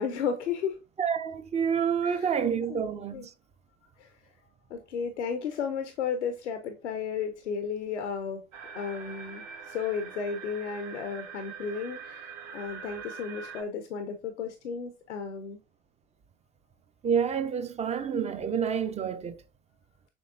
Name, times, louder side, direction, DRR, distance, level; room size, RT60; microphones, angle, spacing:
voice 1, 0.0-0.8 2.0-2.4 2.7-2.8 3.1-3.3 4.0-4.1 4.7-8.4 8.7-15.6, left 6 dB, 85° left, 0.6 m, -34 dB
voice 2, 1.0-3.3 17.0-19.4, right 7 dB, 20° right, 0.4 m, -28 dB
sound 1, 8.5-13.6, right 6 dB, 55° right, 1.1 m, -43 dB
6.2 x 3.2 x 2.5 m
hypercardioid pair, 70°, 34 cm